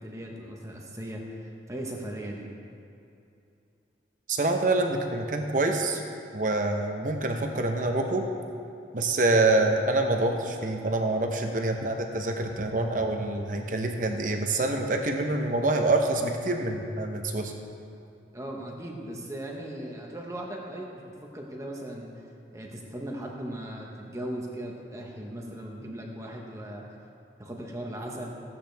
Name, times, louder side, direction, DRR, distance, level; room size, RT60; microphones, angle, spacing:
voice 1, 0.0-2.5 18.3-22.3 22.5-26.8 27.4-28.4, right 1 dB, 15° right, -1 dB, 1.2 m, -38 dB
voice 2, 4.3-6.0 6.3-8.2 8.9-17.5, right 2 dB, 45° right, 4 dB, 0.9 m, -26 dB
15.5 x 8.5 x 3.4 m, 2.7 s
head